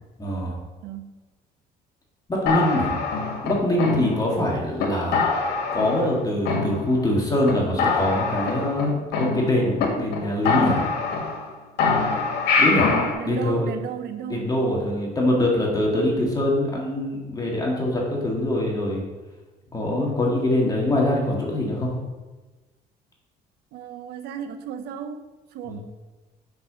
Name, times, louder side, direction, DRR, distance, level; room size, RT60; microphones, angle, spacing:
voice 1, 0.2-0.6 2.3-3.0 3.4-5.2 5.7-10.8 12.6-12.9 13.2-13.7 14.3-19.0 19.7-22.0 25.7-25.8, left 1 dB, 20° left, -2 dB, 1.8 m, -23 dB
sound 1, 2.5-4.4 4.8-4.9 5.1-6.2 6.5-7.2 7.5-7.6 7.8-9.8 10.1-10.2 10.5-11.5 11.8-13.1, left 4 dB, 80° left, 1.8 m, -24 dB
voice 2, 12.8-14.5 23.7-25.8, right 8 dB, 75° right, 9 dB, 0.8 m, -34 dB
5.8 x 5.8 x 6.7 m, 1.2 s
cardioid pair, 110°, 17 cm